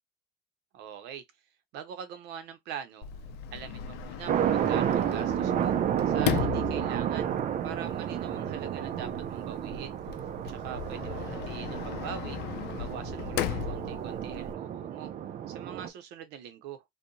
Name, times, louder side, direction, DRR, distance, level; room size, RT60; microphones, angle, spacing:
voice 1, 0.7-1.2 1.7-3.1 3.5-5.7 6.1-7.4 7.6-9.9 10.5-12.4 12.8-15.1 15.5-16.8, right 8 dB, 90° right, 0.6 m, -43 dB
Sliding door, 3.0-14.5, left 10 dB, 80° left, 0.4 m, -37 dB
sound 1, 4.3-15.9, right 10 dB, 50° right, 0.4 m, -31 dB
2.7 x 2.1 x 2.5 m
cardioid pair, 110°, 17 cm